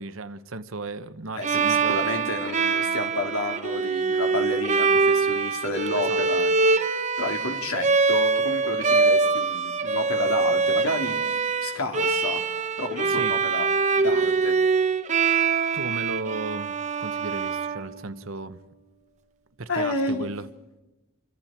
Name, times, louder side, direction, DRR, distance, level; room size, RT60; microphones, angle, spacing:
voice 1, 0.0-2.0 5.9-6.2 13.1-13.4 15.7-18.6 19.6-20.5, right 3 dB, 70° right, 1.0 m, -35 dB
voice 2, 1.3-6.5 7.2-11.2 11.6-12.4 12.8-13.7 13.9-14.5 19.7-20.3, left 2 dB, 90° left, 3.1 m, -30 dB
Bowed string instrument, 1.4-18.3, right 4 dB, 35° right, 0.9 m, -24 dB
29.5 x 24.5 x 4.5 m
head